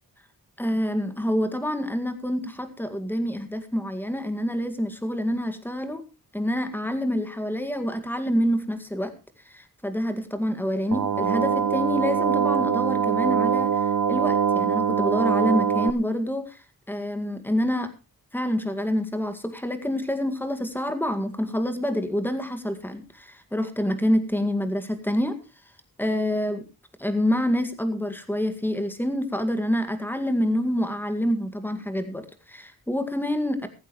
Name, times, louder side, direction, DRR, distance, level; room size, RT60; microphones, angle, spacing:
voice 1, 0.6-6.0 6.3-9.1 9.5-16.6 16.9-17.9 18.3-25.4 26.0-26.6 27.0-33.7, equal, 5° left, 8 dB, 2.0 m, -27 dB
sound 1, 10.9-15.9, right 7 dB, 60° right, 0.8 m, -23 dB
16.5 x 14.5 x 3.2 m, 0.29 s
wide cardioid pair, 135°, 36 cm